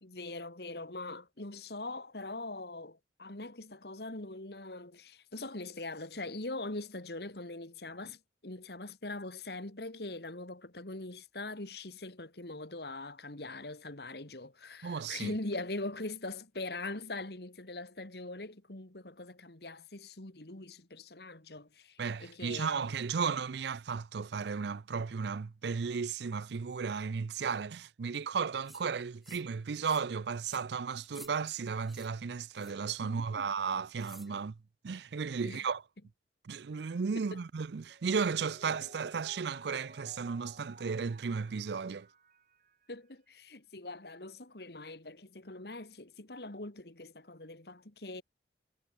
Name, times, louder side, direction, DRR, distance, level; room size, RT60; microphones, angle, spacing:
voice 1, 0.0-22.9 33.0-33.5 34.3-34.4 35.4-35.6 37.2-37.4 38.8-38.9 42.9-48.2, left 2 dB, 60° left, 2.2 m, -42 dB
voice 2, 14.8-15.3 22.0-34.6 34.8-35.8 36.4-42.1, right 5 dB, 70° right, 0.5 m, -34 dB
sound 1, 28.6-28.8 29.2-29.5 29.8-30.1 30.4-30.6 31.0-31.3 31.8-32.1 32.5-32.8 34.0-34.3, equal, ahead, 2.4 m, -54 dB
Mallet percussion, 37.9-42.9, right 2 dB, 45° right, 2.6 m, -54 dB
head